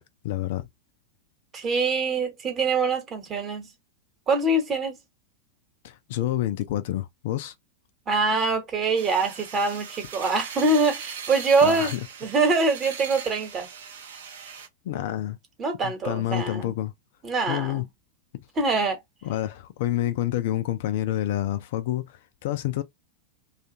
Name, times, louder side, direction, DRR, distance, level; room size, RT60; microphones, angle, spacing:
voice 1, 0.2-0.6 5.8-7.5 11.6-12.1 14.8-15.4 15.8-16.9 17.5-17.8 18.3-18.4 19.2-22.8, left 13 dB, 55° left, 0.4 m, -28 dB
voice 2, 1.5-3.7 4.3-5.0 8.1-12.0 12.2-13.7 15.6-16.8 17.2-17.9 18.6-19.0, right 3 dB, 25° right, 1.1 m, -24 dB
sound 1, 8.9-14.7, right 6 dB, 65° right, 0.6 m, -39 dB
2.4 x 2.4 x 2.8 m
figure-of-eight pair, 95°, 0 cm